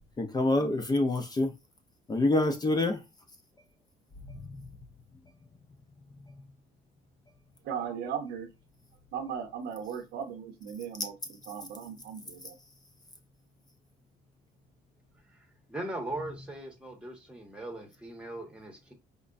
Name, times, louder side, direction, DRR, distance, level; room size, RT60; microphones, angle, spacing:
voice 1, 0.2-1.5 2.1-3.0 4.3-4.4, left 2 dB, 25° left, 0.6 m, -26 dB
voice 2, 7.6-8.5 9.1-12.6, right 7 dB, 75° right, 0.8 m, -37 dB
voice 3, 15.7-18.9, right 1 dB, 5° right, 1.2 m, -39 dB
5.1 x 2.2 x 2.5 m
cardioid pair, 110°, 17 cm